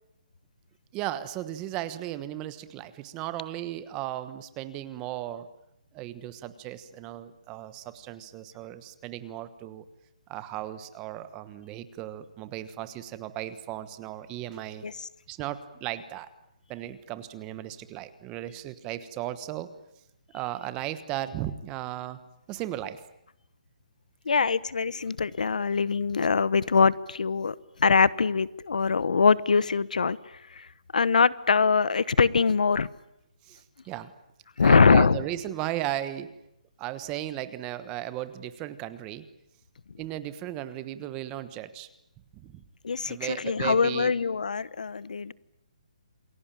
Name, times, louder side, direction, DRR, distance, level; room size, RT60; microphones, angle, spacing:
voice 1, 0.9-5.5 5.9-9.8 10.3-16.3 16.7-19.7 20.3-22.2 22.5-23.0 25.6-25.7 33.4-34.1 34.6-36.3 36.8-39.3 40.0-41.9 42.3-42.6 43.0-44.1, right 13 dB, 15° right, 13 dB, 1.2 m, -36 dB
voice 2, 24.3-30.2 30.5-30.7 30.9-32.9 34.6-35.2 42.8-45.3, left 5 dB, 80° left, 19 dB, 1.1 m, -23 dB
28.0 x 21.5 x 9.1 m, 0.83 s
hypercardioid pair, 165°, 4 cm